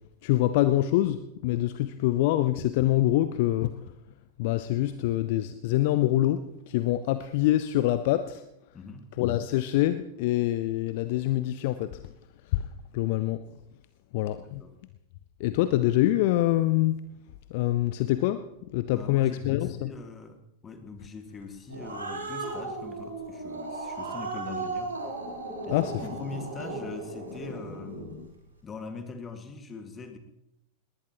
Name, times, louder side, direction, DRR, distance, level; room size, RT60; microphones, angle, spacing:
voice 1, 0.2-3.8 4.4-8.4 9.2-12.0 12.5-12.7 12.9-13.4 14.1-14.6 15.4-17.0 17.5-18.4 18.7-19.9 25.7-25.9, left 15 dB, 50° left, 12 dB, 0.6 m, -25 dB
voice 2, 8.7-9.1 14.4-14.8 18.9-24.9 25.7-28.2 28.6-30.2, left 4 dB, 20° left, 6 dB, 2.0 m, -42 dB
Growling, 21.4-28.2, right 3 dB, 75° right, 4.1 m, -36 dB
20.0 x 19.0 x 3.0 m, 0.85 s
figure-of-eight pair, 90°, 0 cm